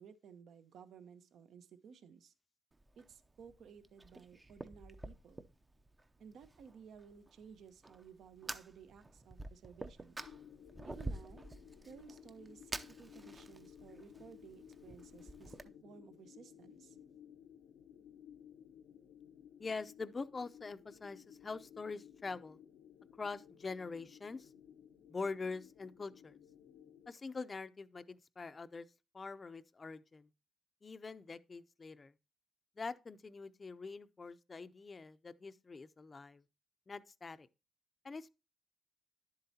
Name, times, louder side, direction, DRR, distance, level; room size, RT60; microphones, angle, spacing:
voice 1, 0.0-2.3 3.0-5.4 6.2-10.2 10.8-11.4 11.8-12.7 13.0-17.0, right 7 dB, 70° right, 0.9 m, -56 dB
Fire, 2.7-15.6, right 2 dB, 20° right, 0.6 m, -49 dB
sound 1, 10.2-27.1, left 9 dB, 90° left, 0.8 m, -58 dB
voice 2, 19.6-22.6 23.2-24.5 25.1-26.4 27.1-28.9 29.1-30.3 30.8-32.1 32.8-36.4 36.9-37.5 38.0-38.3, left 4 dB, 30° left, 0.5 m, -44 dB
10.5 x 7.7 x 2.8 m
cardioid pair, 95°, 0 cm